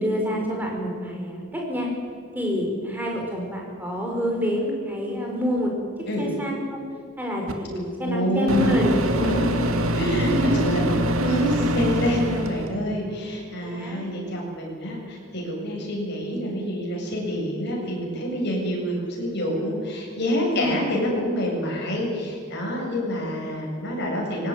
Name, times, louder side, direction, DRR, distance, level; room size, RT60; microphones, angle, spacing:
voice 1, 0.0-1.9 2.3-5.7 6.2-6.8 7.2-9.3 10.2-10.8 13.6-14.1 20.4-20.7, equal, 10° right, 0 dB, 5.5 m, -27 dB
Microwave oven, 7.5-7.6 8.5-12.7, right 1 dB, 70° right, 2.1 m, -24 dB
voice 2, 8.0-10.3 10.6-24.5, equal, 50° left, -1 dB, 7.7 m, -27 dB
21.5 x 18.0 x 9.7 m, 2.2 s
head